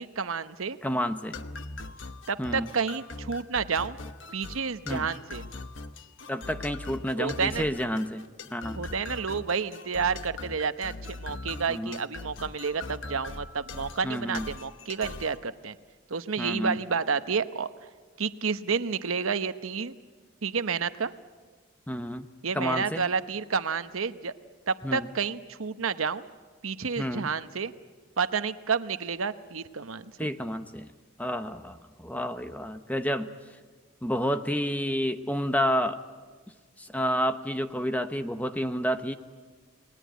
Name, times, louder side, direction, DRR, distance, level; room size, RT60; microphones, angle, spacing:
voice 1, 0.0-0.8 2.3-4.0 4.3-5.4 7.2-7.7 8.8-15.8 16.1-17.7 18.2-19.9 20.4-21.1 22.4-24.3 24.7-26.3 26.6-27.7 28.2-30.3, right 5 dB, 85° right, 11 dB, 0.9 m, -30 dB
voice 2, 0.8-1.4 2.4-2.7 4.9-5.1 6.3-8.8 11.7-12.0 14.0-14.5 16.4-16.8 21.9-22.3 22.5-23.0 24.8-25.1 27.0-27.3 30.2-30.9 31.2-33.3 34.0-36.0 36.8-39.1, equal, 5° left, 9 dB, 0.9 m, -30 dB
sound 1, 1.3-15.4, left 3 dB, 65° left, 1.0 m, -41 dB
29.5 x 20.0 x 9.3 m, 1.4 s
head